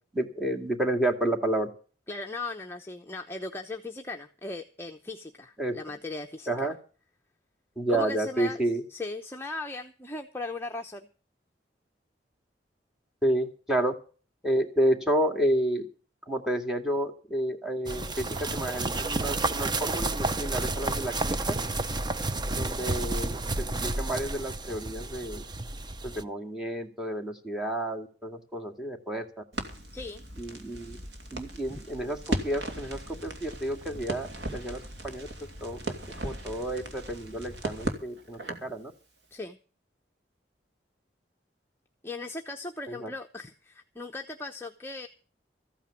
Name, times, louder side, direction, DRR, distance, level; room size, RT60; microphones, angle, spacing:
voice 1, 0.1-1.7 5.6-5.8 6.5-6.8 7.8-8.8 13.2-13.9 14.4-15.9 16.3-21.6 22.5-25.4 26.0-29.3 30.4-31.0 31.3-35.3 35.6-35.9 36.2-38.9 42.9-43.1, right 1 dB, 5° right, 2 dB, 2.3 m, -30 dB
voice 2, 2.1-6.7 7.9-11.1 29.9-30.2 31.7-31.8 39.3-39.6 42.0-45.1, left 3 dB, 15° left, 3 dB, 0.9 m, -38 dB
sound 1, 17.9-26.2, right 2 dB, 25° right, 0.7 m, -31 dB
Crackle, 29.5-38.7, right 1 dB, 75° right, 2.5 m, -37 dB
14.5 x 9.1 x 7.0 m, 0.39 s
head